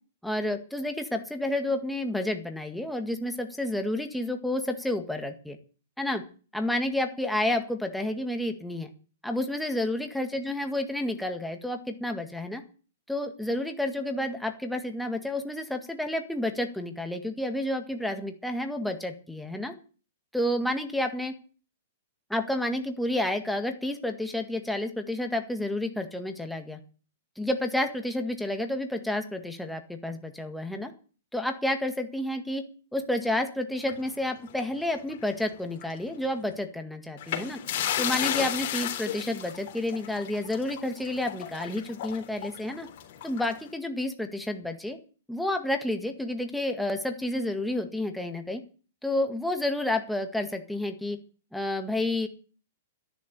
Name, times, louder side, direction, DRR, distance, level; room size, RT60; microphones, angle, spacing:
voice 1, 0.2-5.6 6.0-6.2 6.5-8.9 9.2-12.6 13.1-19.7 20.3-21.3 22.3-26.8 27.4-30.9 31.3-32.6 32.9-37.6 38.0-42.9 43.2-45.0 45.3-48.6 49.0-51.2 51.5-52.3, left 1 dB, ahead, 5 dB, 1.9 m, -30 dB
sound 1, 33.8-35.4 35.7-35.9 37.2-43.7, left 10 dB, 50° left, 3.6 m, -34 dB
12.5 x 11.0 x 8.3 m, 0.38 s
hypercardioid pair, 160°, 0 cm